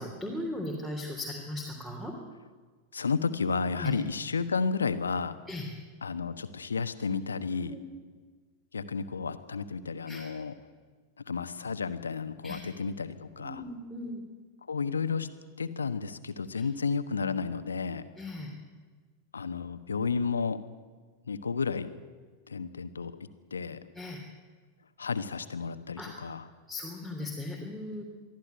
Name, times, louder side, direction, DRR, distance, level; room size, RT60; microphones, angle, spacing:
voice 1, 0.0-2.1 3.8-3.9 5.5-5.6 7.6-7.8 10.0-10.2 12.4-12.6 13.4-14.2 16.5-16.6 18.2-18.5 23.9-24.2 26.0-26.1 26.7-28.0, left 1 dB, 5° right, 1 dB, 3.4 m, -37 dB
voice 2, 2.9-5.4 6.0-7.7 8.7-10.5 11.3-13.6 14.7-15.3 15.6-18.0 19.3-20.6 21.3-21.9 22.5-23.1 23.5-23.8 25.0-26.5, left 5 dB, 75° left, 11 dB, 1.2 m, -32 dB
23.0 x 14.0 x 9.5 m, 1.5 s
figure-of-eight pair, 90°, 0 cm